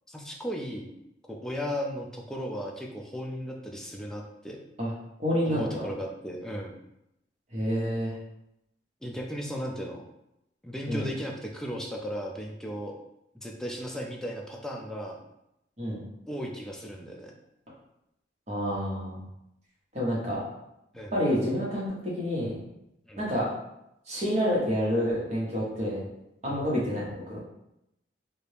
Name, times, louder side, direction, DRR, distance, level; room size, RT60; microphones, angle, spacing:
voice 1, 0.1-0.9 1.3-4.6 5.4-6.7 9.0-10.0 10.6-12.9 13.3-15.2 16.3-17.3 20.9-21.1 23.1-23.3 26.5-26.6, equal, 5° left, 0 dB, 0.3 m, -36 dB
voice 2, 5.2-5.8 7.5-8.1 10.9-11.1 15.8-16.0 18.5-19.2 19.9-20.4 21.1-22.6 23.2-23.5 24.1-26.0 26.4-27.4, equal, 40° right, -5 dB, 1.0 m, -28 dB
2.7 x 2.5 x 3.3 m, 0.85 s
head